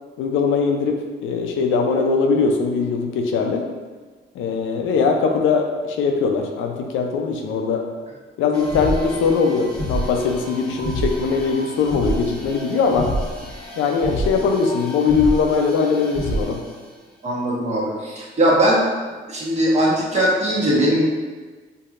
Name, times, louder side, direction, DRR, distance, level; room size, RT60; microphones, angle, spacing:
voice 1, 0.2-3.7 4.3-7.8 8.4-13.1 13.8-16.6, left 5 dB, 85° left, 3 dB, 0.5 m, -21 dB
sound 1, 8.5-16.8, equal, 5° left, 1.2 m, -29 dB
voice 2, 17.2-18.8 19.3-21.0, right 1 dB, 35° right, -5 dB, 1.1 m, -19 dB
4.5 x 2.8 x 2.5 m, 1.4 s
cardioid pair, 90°, 20 cm